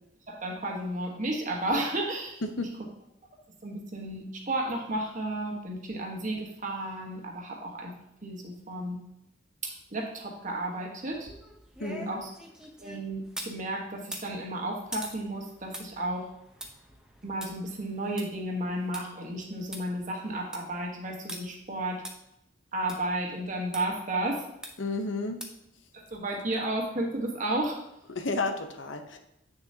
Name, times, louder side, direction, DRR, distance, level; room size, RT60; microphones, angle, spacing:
voice 1, 0.3-2.4 3.6-7.9 8.2-9.0 9.6-11.3 11.9-12.3 12.8-16.3 17.2-22.0 22.7-24.5 25.9-27.8, right 1 dB, 45° right, 1 dB, 1.4 m, -33 dB
sound 1, 11.1-13.6 14.0-19.0 19.4-19.5 19.7-19.8 20.3-20.7 21.3-21.4 22.0-22.1 22.9-23.0 23.7-23.8 24.6-24.9 25.4-25.7 26.1-26.2, right 1 dB, 5° right, 0.8 m, -43 dB
voice 2, 11.8-12.2 24.8-25.4 28.1-29.2, left 3 dB, 80° left, 6 dB, 0.8 m, -32 dB
8.1 x 6.6 x 2.8 m, 0.84 s
head